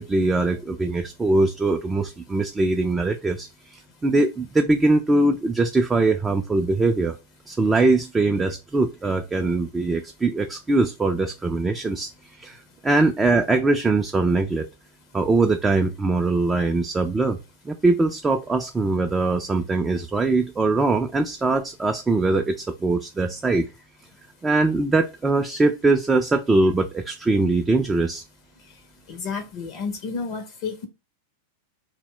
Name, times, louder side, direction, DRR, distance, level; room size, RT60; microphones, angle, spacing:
voice 1, 0.0-7.2 7.5-14.7 15.1-17.4 17.7-23.7 24.4-28.2, right 3 dB, 15° right, 0.3 m, -22 dB
voice 2, 29.1-30.9, left 5 dB, 50° left, 0.5 m, -31 dB
2.1 x 2.1 x 3.7 m
hypercardioid pair, 100°, 0 cm